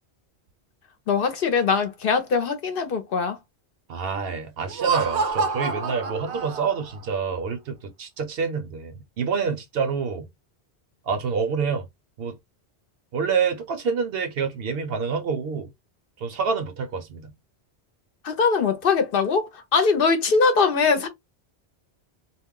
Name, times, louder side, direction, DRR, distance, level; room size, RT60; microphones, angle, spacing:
voice 1, 1.1-3.4 18.2-21.1, left 5 dB, 60° left, 0.8 m, -22 dB
voice 2, 3.9-10.3 11.1-11.8 12.2-12.4 13.1-15.7 16.2-17.3, right 5 dB, 65° right, 0.8 m, -27 dB
Laughter, 4.6-7.0, right 5 dB, 90° right, 0.9 m, -27 dB
2.3 x 2.1 x 3.6 m
omnidirectional pair, 1.1 m